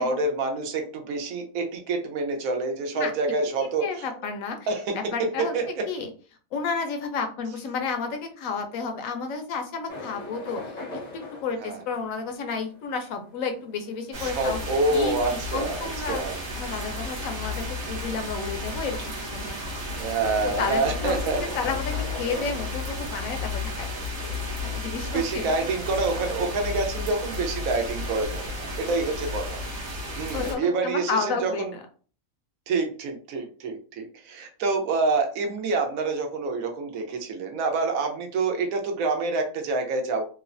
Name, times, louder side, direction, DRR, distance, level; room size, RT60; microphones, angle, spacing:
voice 1, 0.0-4.1 4.7-5.9 11.6-11.8 14.2-16.4 20.0-21.4 25.0-29.6 30.2-31.7 32.7-40.2, right 3 dB, 75° right, 4 dB, 1.0 m, -27 dB
voice 2, 3.8-4.6 4.9-5.5 5.9-6.1 6.5-10.6 11.1-14.6 14.9-15.2 15.5-16.2 16.6-19.8 20.6-23.9 24.2-24.4 24.6-25.5 30.3-31.8, left 5 dB, 75° left, 5 dB, 1.0 m, -31 dB
sound 1, 9.9-22.7, left 3 dB, 45° left, 0.6 m, -41 dB
sound 2, 14.1-30.6, left 2 dB, 45° right, 0.9 m, -33 dB
3.1 x 2.0 x 2.4 m, 0.39 s
omnidirectional pair, 1.5 m